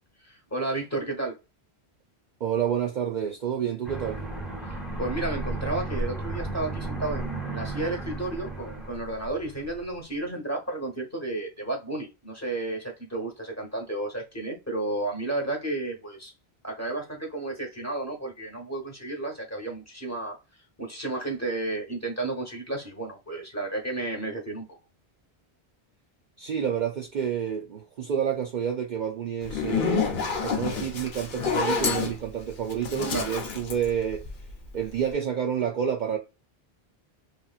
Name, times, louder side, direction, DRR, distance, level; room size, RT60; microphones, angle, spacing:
voice 1, 0.2-1.4 5.0-16.3 16.6-20.4 20.8-24.8 33.0-33.3, right 2 dB, 15° left, 1.0 m, -32 dB
voice 2, 2.4-4.2 26.4-34.3 34.7-36.2, right 8 dB, 55° right, 0.6 m, -29 dB
Aircraft, 3.8-10.0, right 2 dB, ahead, 0.6 m, -34 dB
Zipper (clothing), 29.4-34.7, left 6 dB, 55° left, 0.8 m, -29 dB
3.1 x 2.8 x 2.4 m
omnidirectional pair, 1.1 m